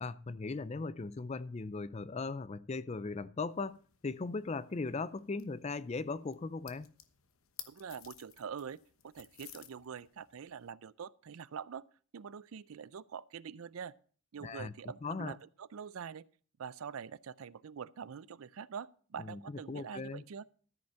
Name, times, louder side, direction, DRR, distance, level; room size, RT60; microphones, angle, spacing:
voice 1, 0.0-6.9 14.4-14.7 15.0-15.4 19.2-20.2, left 3 dB, 30° left, 0.4 m, -38 dB
sound 1, 3.5-10.7, left 11 dB, 70° left, 1.1 m, -56 dB
voice 2, 7.7-11.8 12.1-13.9 14.3-16.2 16.6-20.4, right 7 dB, 75° right, 0.4 m, -45 dB
13.5 x 5.4 x 7.0 m
head